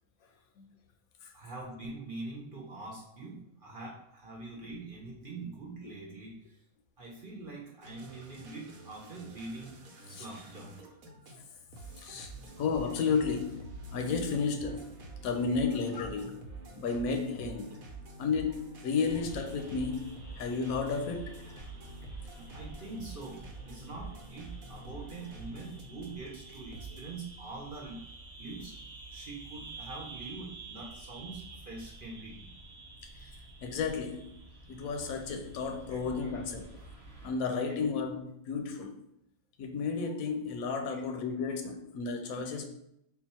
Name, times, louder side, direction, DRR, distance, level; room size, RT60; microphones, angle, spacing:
voice 1, 1.3-6.6 7.0-9.7 10.1-10.8 22.3-28.1 28.4-28.7 29.1-32.5 35.9-36.2 40.9-41.0, right 3 dB, 45° right, 0.9 m, -44 dB
sound 1, 7.8-27.0, right 3 dB, 80° right, 1.1 m, -48 dB
voice 2, 12.6-14.9 15.2-16.4 16.8-17.8 18.2-21.4 33.6-34.3 34.7-36.8 37.2-39.0 39.6-42.7, left 5 dB, 85° left, 1.1 m, -32 dB
sound 2, 19.0-37.3, right 2 dB, 20° right, 1.1 m, -49 dB
3.8 x 2.3 x 4.2 m
omnidirectional pair, 1.4 m